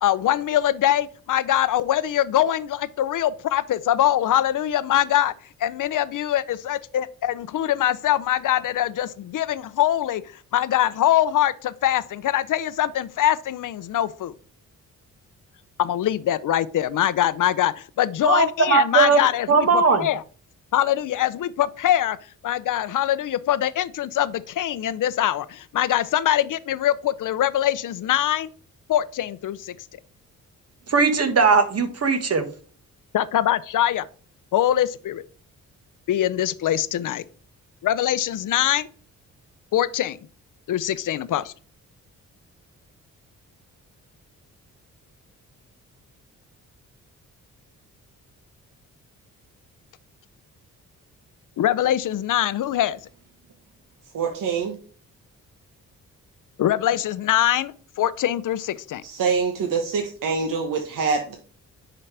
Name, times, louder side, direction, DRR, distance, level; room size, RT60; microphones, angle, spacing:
voice 1, 0.0-5.3 5.6-10.2 10.5-14.3 15.8-20.2 20.7-22.2 22.4-28.5 28.9-29.7 33.1-34.1 34.5-35.2 36.1-37.2 37.8-38.9 39.7-40.2 40.7-41.5 51.6-53.0 56.6-59.0, left 12 dB, 70° left, 0.6 m, -23 dB
voice 2, 18.2-19.2 19.5-20.1 30.9-32.5, right 4 dB, 45° right, 1.6 m, -19 dB
voice 3, 54.1-54.7 59.0-61.4, right 5 dB, 70° right, 1.1 m, -25 dB
9.9 x 4.0 x 3.4 m
cardioid pair, 65°, 33 cm